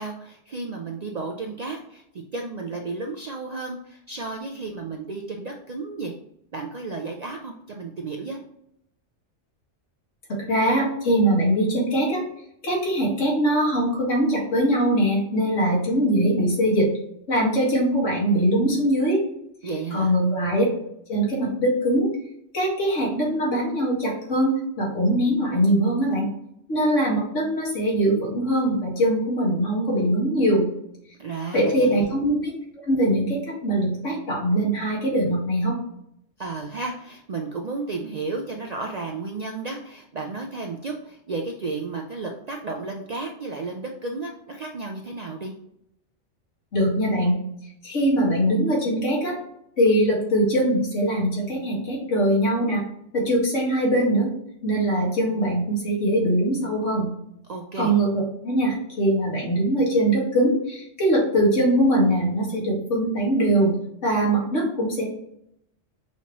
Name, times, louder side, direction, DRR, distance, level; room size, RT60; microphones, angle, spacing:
voice 1, 0.0-2.0 2.3-6.1 6.5-8.4 19.6-20.1 31.2-32.1 36.4-45.5 57.4-57.9, right 3 dB, 60° right, 2 dB, 0.4 m, -33 dB
voice 2, 10.3-12.2 12.6-16.9 17.3-19.2 19.9-20.7 21.1-22.1 22.5-26.3 26.7-30.6 31.5-32.5 32.9-35.8 46.7-47.4 47.8-49.3 49.8-52.8 53.1-54.3 54.6-57.1 57.8-58.1 58.4-63.7 64.0-65.0, right 1 dB, 80° left, -3 dB, 2.0 m, -22 dB
5.7 x 2.9 x 2.9 m, 0.75 s
omnidirectional pair, 1.2 m